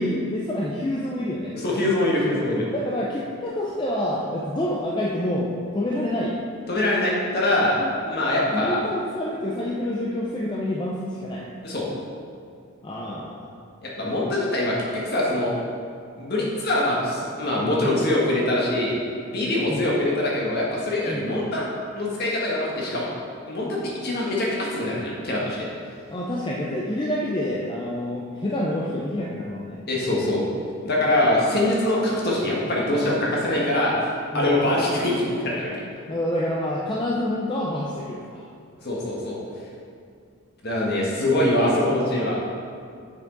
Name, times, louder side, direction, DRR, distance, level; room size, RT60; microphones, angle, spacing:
voice 1, 0.0-1.6 2.7-6.4 7.8-7.9 8.5-11.5 12.8-13.5 19.7-20.0 21.0-21.5 26.1-29.8 34.3-34.7 36.1-38.5, left 1 dB, 20° left, -4 dB, 0.5 m, -28 dB
voice 2, 1.6-2.7 6.7-7.8 8.0-8.8 11.6-11.9 13.8-15.5 16.2-18.9 19.3-21.7 21.9-23.1 23.5-25.7 29.9-30.4 30.8-35.7 38.8-39.4 40.6-42.4, left 1 dB, 45° left, -4 dB, 1.5 m, -23 dB
7.3 x 5.9 x 3.9 m, 2.3 s
head